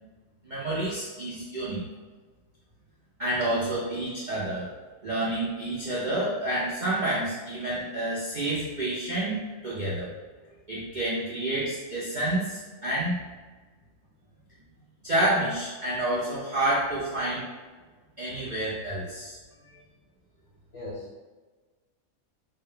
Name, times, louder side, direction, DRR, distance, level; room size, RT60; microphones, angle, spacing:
voice 1, 0.4-1.8 3.2-4.7 5.0-10.1 10.7-13.2 15.0-17.5 18.2-19.4, right 1 dB, 55° right, -8 dB, 0.5 m, -29 dB
voice 2, 19.5-19.9 20.7-21.2, left 2 dB, 55° left, -7 dB, 0.6 m, -41 dB
3.5 x 2.1 x 3.6 m, 1.3 s
omnidirectional pair, 1.6 m